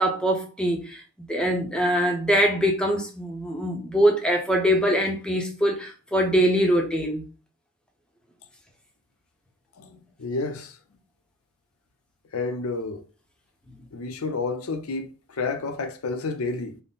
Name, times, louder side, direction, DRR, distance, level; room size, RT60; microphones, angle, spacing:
voice 1, 0.0-7.2, equal, 5° left, 0.7 m, -23 dB
voice 2, 9.8-10.8 12.3-13.0 13.9-16.8, left 3 dB, 75° left, 0.5 m, -30 dB
3.6 x 2.1 x 4.0 m
head